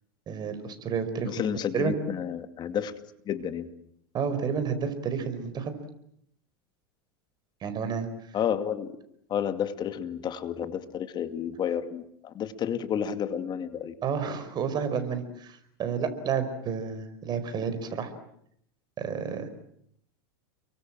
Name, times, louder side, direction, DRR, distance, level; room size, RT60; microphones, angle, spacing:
voice 1, 0.3-1.9 4.1-5.7 7.6-8.1 14.0-18.1 19.0-19.5, right 6 dB, 35° right, 9 dB, 5.1 m, -30 dB
voice 2, 1.2-2.9 3.3-3.7 8.3-9.0 9.3-13.9, left 8 dB, 35° left, 10 dB, 2.4 m, -31 dB
30.0 x 24.0 x 7.7 m, 0.71 s
supercardioid pair, 115°, 13 cm